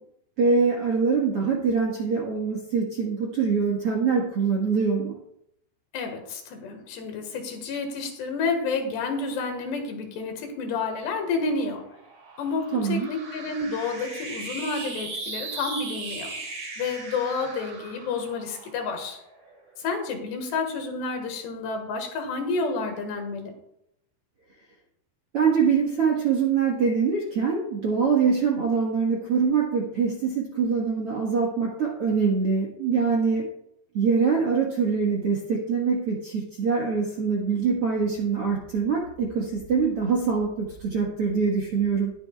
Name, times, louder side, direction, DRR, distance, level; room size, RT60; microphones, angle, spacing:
voice 1, 0.4-5.1 12.7-13.1 25.3-33.5 33.9-42.1, right 5 dB, 80° right, -1 dB, 1.2 m, -24 dB
voice 2, 5.9-11.8 12.4-16.3 16.8-19.2 19.8-23.5, left 4 dB, 75° left, 4 dB, 3.6 m, -30 dB
sound 1, 11.2-19.8, right 3 dB, 45° right, 2.4 m, -38 dB
20.5 x 7.6 x 2.3 m, 0.78 s
omnidirectional pair, 5.0 m